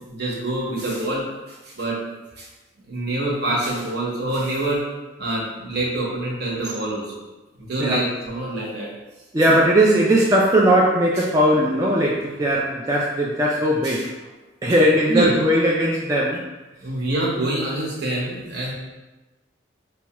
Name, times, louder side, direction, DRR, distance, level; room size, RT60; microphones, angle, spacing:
voice 1, 0.1-2.0 2.4-2.5 2.9-4.8 5.2-7.0 7.6-8.9 13.8-14.1 15.1-15.3 16.8-18.7, right 1 dB, 60° right, -4 dB, 1.0 m, -26 dB
voice 2, 9.3-14.1 14.6-16.5, right 1 dB, 20° right, -4 dB, 0.3 m, -18 dB
4.4 x 2.2 x 2.9 m, 1.1 s
head